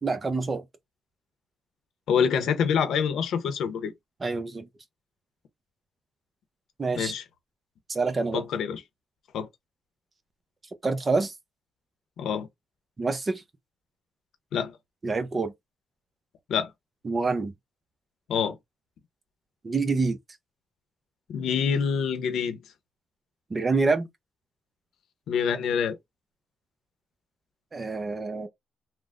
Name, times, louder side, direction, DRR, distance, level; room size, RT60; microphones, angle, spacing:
voice 1, 0.0-0.6 4.2-4.7 6.8-7.1 7.9-8.4 10.8-11.3 13.0-13.4 15.0-15.5 17.0-17.5 19.6-20.2 23.5-24.1 27.7-28.5, right 3 dB, 30° right, 0.8 m, -26 dB
voice 2, 2.1-3.9 7.0-7.2 8.3-8.8 9.3-9.5 12.2-12.5 14.5-14.8 16.5-16.7 18.3-18.6 21.3-22.6 25.3-26.0, left 7 dB, 75° left, 0.8 m, -26 dB
3.4 x 2.2 x 2.5 m
cardioid pair, 90°, 0 cm